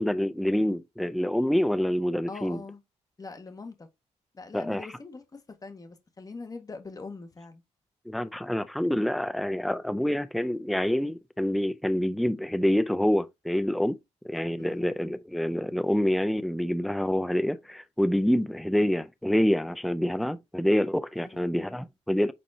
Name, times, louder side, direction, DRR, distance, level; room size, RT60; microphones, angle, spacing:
voice 1, 0.0-2.6 4.5-4.9 8.1-14.0 14.2-22.3, equal, ahead, 0.5 m, -27 dB
voice 2, 2.3-2.8 3.2-3.9 4.3-7.6 14.6-14.9 21.1-21.5, left 3 dB, 30° left, 1.6 m, -42 dB
8.3 x 4.2 x 2.8 m
cardioid pair, 85°, 12 cm